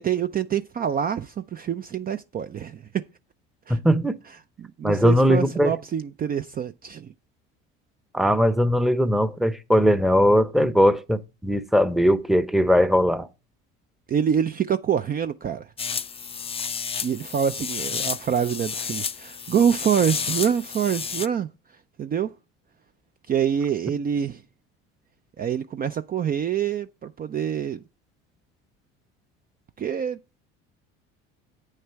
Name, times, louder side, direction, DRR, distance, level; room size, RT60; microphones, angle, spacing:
voice 1, 0.0-2.8 3.7-3.8 4.6-7.1 14.1-15.7 17.0-21.5 22.0-22.3 23.3-24.4 25.4-27.8 29.8-30.2, right 8 dB, 30° right, 0.5 m, -26 dB
voice 2, 3.7-4.1 4.8-5.7 8.1-13.3, equal, ahead, 0.8 m, -20 dB
sound 1, 15.8-21.3, left 6 dB, 20° left, 0.5 m, -31 dB
8.7 x 6.5 x 4.6 m
supercardioid pair, 80°, 29 cm